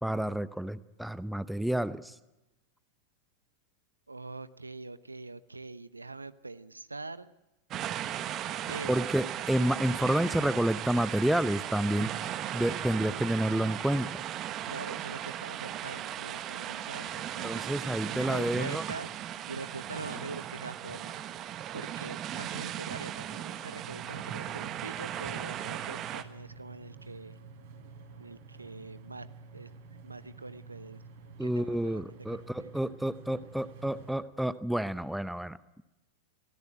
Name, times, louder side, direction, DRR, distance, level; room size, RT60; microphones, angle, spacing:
voice 1, 0.0-2.1 8.9-12.1 12.5-14.2 17.4-18.8 31.4-35.8, right 1 dB, ahead, 16 dB, 0.8 m, -29 dB
voice 2, 4.1-7.3 8.7-9.0 14.7-17.7 18.0-19.1 19.5-21.2 21.7-27.4 28.2-29.3 29.5-29.7 30.0-31.0 31.4-32.7, right 3 dB, 80° right, 15 dB, 0.8 m, -43 dB
sound 1, 7.7-26.2, right 11 dB, 35° right, 1.3 m, -37 dB
sound 2, 23.7-34.2, right 4 dB, 55° right, 4.4 m, -50 dB
24.0 x 17.0 x 9.1 m, 1.0 s
figure-of-eight pair, 90°, 0 cm